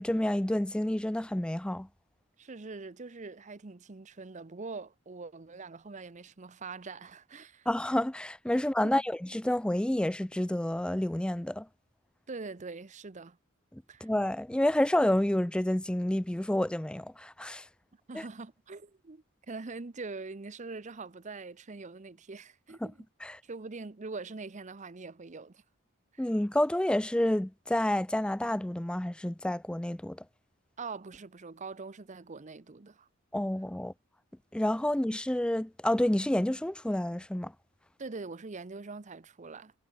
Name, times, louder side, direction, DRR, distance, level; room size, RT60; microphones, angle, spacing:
voice 1, 0.0-1.9 7.7-11.7 13.7-17.7 18.1-18.2 22.8-22.9 23.2-23.4 26.2-30.2 33.3-33.9 34.5-37.5, left 1 dB, 5° left, 0.3 m, -29 dB
voice 2, 2.4-7.7 8.8-9.0 12.3-13.4 13.9-14.1 18.1-23.0 23.4-25.6 26.1-26.3 30.8-33.1 38.0-39.7, right 3 dB, 35° right, 0.7 m, -43 dB
head